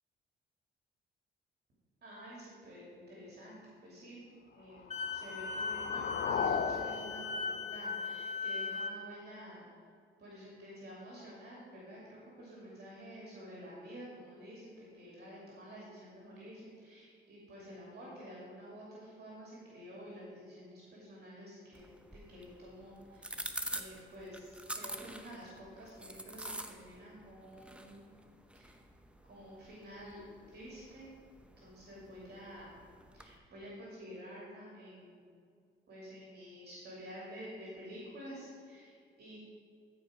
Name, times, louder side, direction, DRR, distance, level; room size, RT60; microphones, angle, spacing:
voice 1, 2.0-4.2 4.5-4.8 5.1-9.7 10.2-28.1 28.5-28.7 29.3-30.2 30.5-31.1 31.6-32.7 33.1-35.2 35.9-39.4, equal, 55° right, -5 dB, 2.7 m, -50 dB
sound 1, 4.7-8.7, left 6 dB, 50° left, 0.7 m, -38 dB
Wind instrument woodwind instrument, 4.9-9.0, left 5 dB, 35° left, 1.0 m, -38 dB
sound 2, 21.7-33.4, right 1 dB, 5° right, 0.7 m, -47 dB
13.5 x 4.9 x 5.0 m, 2.2 s
cardioid pair, 90°, 20 cm